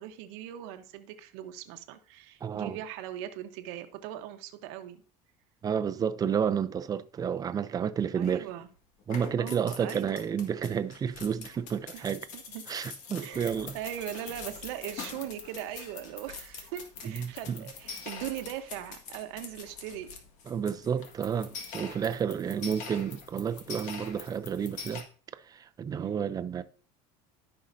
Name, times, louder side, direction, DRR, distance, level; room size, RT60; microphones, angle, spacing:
voice 1, 0.0-5.0 8.1-8.7 9.4-10.2 11.9-12.1 12.3-12.6 13.2-20.1 22.3-22.7 25.9-26.2, right 11 dB, 85° right, 1.1 m, -40 dB
voice 2, 2.4-2.8 5.6-8.5 9.1-12.3 12.7-13.8 17.0-17.6 20.5-25.0 25.4-26.6, right 7 dB, 25° right, 0.6 m, -31 dB
sound 1, 8.2-8.7 9.0-25.0, left 5 dB, 60° left, 1.8 m, -44 dB
14.0 x 5.5 x 2.7 m
cardioid pair, 125°, 14 cm